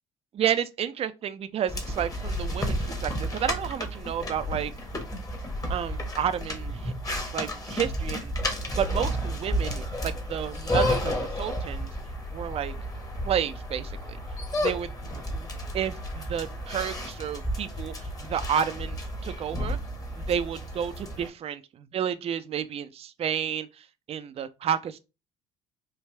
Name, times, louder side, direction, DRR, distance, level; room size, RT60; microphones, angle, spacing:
voice 1, 0.3-4.7 5.7-8.3 8.7-11.9 12.3-12.7 13.2-14.2 14.6-19.0 19.2-19.8 20.2-25.0, right 9 dB, 40° right, 0.4 m, -31 dB
sound 1, 1.7-21.3, equal, 20° left, 1.1 m, -32 dB
3.4 x 2.3 x 3.2 m
hypercardioid pair, 60°, 16 cm